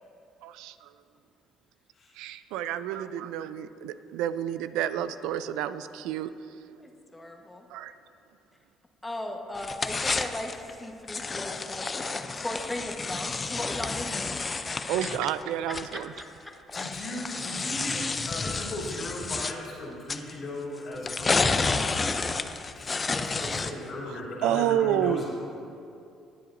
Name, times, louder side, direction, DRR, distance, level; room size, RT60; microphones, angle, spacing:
voice 1, 0.4-0.9 2.2-6.3 7.7-7.9 14.9-16.1 24.4-25.3, right 11 dB, 85° right, 13 dB, 0.4 m, -29 dB
voice 2, 6.8-7.7 9.0-14.4 15.7-16.5, left 1 dB, 15° left, 2 dB, 1.2 m, -38 dB
sound 1, 9.6-10.7 11.1-16.2 16.7-19.5 20.1-20.3 21.0-23.9, left 4 dB, 30° left, 0.4 m, -30 dB
voice 3, 16.7-21.5 22.7-25.3, left 1 dB, 50° left, -5 dB, 2.7 m, -37 dB
19.5 x 7.7 x 2.6 m, 2.6 s
cardioid pair, 85°, 0 cm